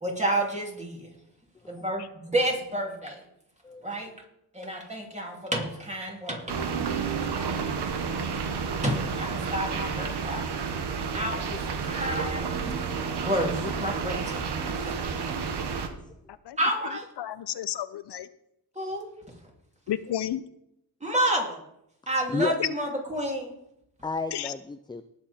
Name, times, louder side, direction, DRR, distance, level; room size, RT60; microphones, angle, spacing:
voice 1, 0.0-1.1 1.6-3.2 3.8-4.1 4.5-6.7 7.2-7.3 8.8-10.5 11.1-12.7 13.2-15.0 16.6-17.0 18.7-19.1 21.0-21.6 22.1-23.6, right 1 dB, 15° right, 0 dB, 3.0 m, -30 dB
sound 1, 6.5-15.9, right 5 dB, 80° right, 1.5 m, -30 dB
voice 2, 15.5-15.9 22.3-22.6 24.0-25.0, left 3 dB, 10° left, 10 dB, 0.4 m, -33 dB
voice 3, 17.2-18.3 19.9-20.4 22.6-22.7 24.3-24.5, left 11 dB, 75° left, 14 dB, 0.7 m, -31 dB
18.5 x 7.6 x 4.4 m, 0.80 s
wide cardioid pair, 120°, 40 cm